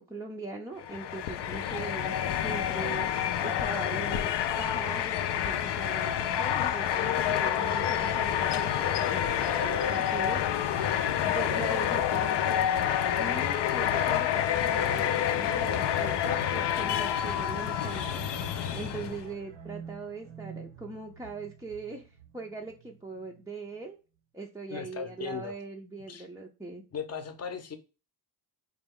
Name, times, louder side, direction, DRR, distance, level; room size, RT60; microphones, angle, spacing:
voice 1, 0.0-2.1 2.4-3.1 3.4-10.4 11.2-18.3 18.7-22.0 22.3-24.0 24.3-26.8, right 3 dB, 5° right, -1 dB, 0.4 m, -40 dB
sound 1, 0.8-19.3, left 10 dB, 65° left, 0.5 m, -28 dB
sound 2, 17.1-23.5, right 7 dB, 80° right, 0.9 m, -47 dB
voice 2, 24.7-25.6 26.1-26.3 26.9-27.8, left 6 dB, 35° left, 7 dB, 0.7 m, -37 dB
4.2 x 2.3 x 3.5 m, 0.32 s
cardioid pair, 110°, 46 cm